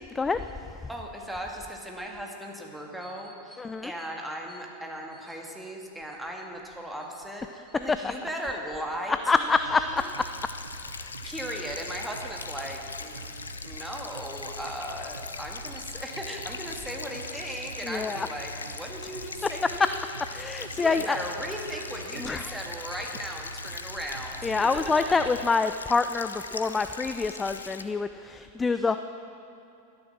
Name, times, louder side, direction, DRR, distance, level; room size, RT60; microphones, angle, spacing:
voice 1, 0.9-10.0 11.0-13.3 13.6-20.0 20.5-24.7 26.5-26.6 28.7-28.9, equal, ahead, 0 dB, 1.8 m, -37 dB
voice 2, 3.6-3.9 7.9-8.1 9.3-10.2 10.7-11.1 17.8-18.3 20.3-21.2 22.2-22.6 24.4-29.0, left 4 dB, 15° left, 10 dB, 0.3 m, -26 dB
sound 1, 9.5-25.5, right 2 dB, 75° right, 0.7 m, -44 dB
sound 2, 10.0-27.8, left 4 dB, 75° left, 0.6 m, -41 dB
12.5 x 11.5 x 6.0 m, 2.6 s
figure-of-eight pair, 90°, 0 cm